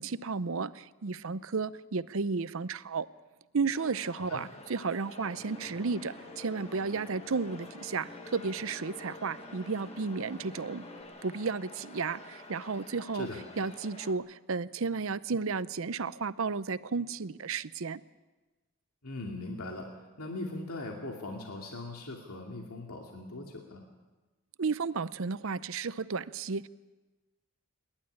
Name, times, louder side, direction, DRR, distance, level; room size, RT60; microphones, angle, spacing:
voice 1, 0.0-3.1 3.5-10.8 11.2-13.3 13.6-18.0 24.6-26.7, right 4 dB, 65° right, 16 dB, 0.6 m, -33 dB
sound 1, 3.7-14.1, left 2 dB, 30° left, 1.6 m, -49 dB
sound 2, 5.2-11.0, left 2 dB, 5° left, 5.1 m, -50 dB
voice 2, 19.0-19.9 20.2-23.8, left 2 dB, 85° left, 1 dB, 2.5 m, -40 dB
27.5 x 12.0 x 9.9 m, 1.2 s
head